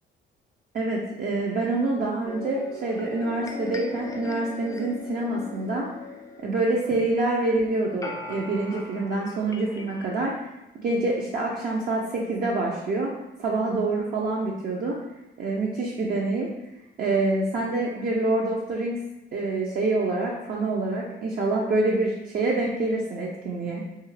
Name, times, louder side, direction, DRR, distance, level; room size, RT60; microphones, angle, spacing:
voice 1, 0.7-5.9 6.4-10.3 10.7-13.1 13.4-15.0 15.4-16.5 17.0-19.0 19.3-23.8, right 2 dB, 45° right, -3 dB, 0.5 m, -26 dB
sound 1, 2.3-10.4, left 3 dB, 15° left, 0.3 m, -39 dB
2.7 x 2.3 x 3.1 m, 0.94 s
cardioid pair, 90°, 20 cm